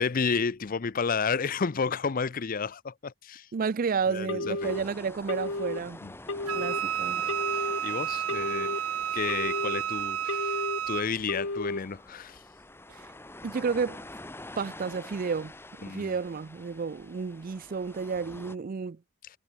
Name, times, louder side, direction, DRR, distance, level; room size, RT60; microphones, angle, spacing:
voice 1, 0.0-3.5 4.1-4.7 6.0-6.1 7.2-7.3 7.8-8.8 9.1-10.6 10.9-12.4 15.8-16.1, left 5 dB, 40° left, 0.5 m, -31 dB
voice 2, 3.5-6.0 6.5-7.2 12.9-13.1 13.4-14.0 14.6-15.5 15.9-19.0, right 5 dB, 40° right, 0.4 m, -31 dB
Telephone, 4.3-4.8 5.3-5.8 6.3-6.8 7.3-7.8 8.3-8.8 9.3-9.8 10.3-10.8 11.3-11.8, left 2 dB, 65° left, 1.8 m, -33 dB
sound 1, 4.6-18.6, left 2 dB, 10° left, 1.3 m, -47 dB
Wind instrument woodwind instrument, 6.5-11.1, right 9 dB, 90° right, 0.6 m, -31 dB
head